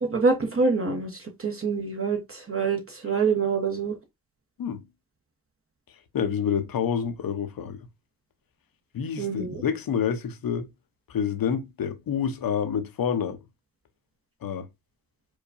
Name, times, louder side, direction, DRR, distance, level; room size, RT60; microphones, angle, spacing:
voice 1, 0.0-3.9 9.2-9.6, right 4 dB, 30° right, 0.8 m, -26 dB
voice 2, 6.1-7.8 8.9-10.7 11.1-13.4 14.4-14.7, left 7 dB, 50° left, 0.7 m, -28 dB
4.7 x 2.2 x 2.5 m
cardioid pair, 60°, 45 cm